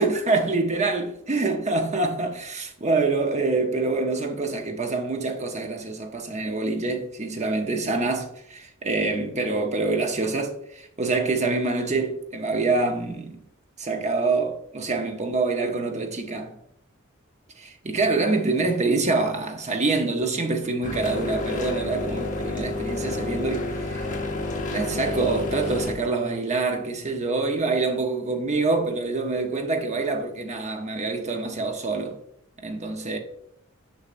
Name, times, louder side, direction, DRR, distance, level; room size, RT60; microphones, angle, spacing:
voice 1, 0.0-13.4 13.8-16.5 17.6-24.1 24.7-32.2 32.6-33.2, right 3 dB, 35° right, 0.8 m, -26 dB
sound 1, 20.8-25.9, left 2 dB, 40° left, 0.9 m, -30 dB
6.6 x 5.5 x 2.5 m
head